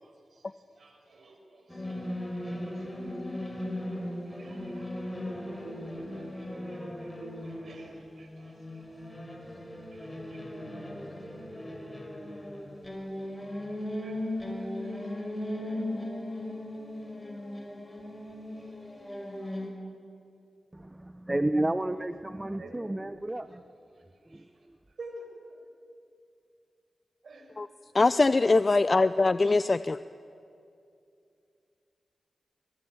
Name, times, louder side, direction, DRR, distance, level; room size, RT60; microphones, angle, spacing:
voice 1, 0.8-3.5 4.3-9.0 9.9-10.4 14.0-14.2 14.5-15.1 22.6-23.1 24.3-24.4 25.0-25.6 27.2-27.6 28.4-28.8, right 2 dB, 70° right, 4 dB, 6.0 m, -51 dB
sound 1, 1.7-19.7, left 1 dB, 15° left, 5.9 m, -38 dB
voice 2, 20.7-23.6 24.3-24.4, right 1 dB, 20° right, 11 dB, 1.0 m, -31 dB
voice 3, 27.9-30.0, left 3 dB, 45° left, 14 dB, 0.6 m, -22 dB
25.5 x 21.5 x 9.6 m, 2.5 s
cardioid pair, 45°, 0 cm